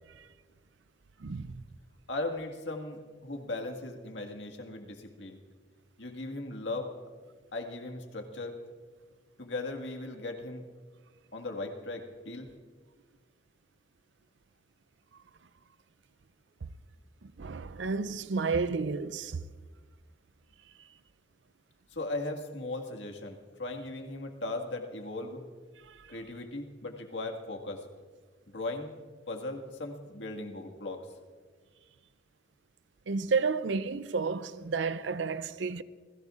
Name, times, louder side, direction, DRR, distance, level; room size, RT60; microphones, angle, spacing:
voice 1, 1.2-1.6 17.2-19.4 25.9-26.0 33.1-35.8, right 4 dB, 75° right, 0.5 m, -31 dB
voice 2, 2.1-5.4 6.0-6.9 7.5-8.6 9.4-10.7 11.3-12.5 21.9-25.4 26.1-27.8 28.5-28.9 29.3-31.1, left 2 dB, 75° left, 1.9 m, -38 dB
29.5 x 16.5 x 2.5 m
head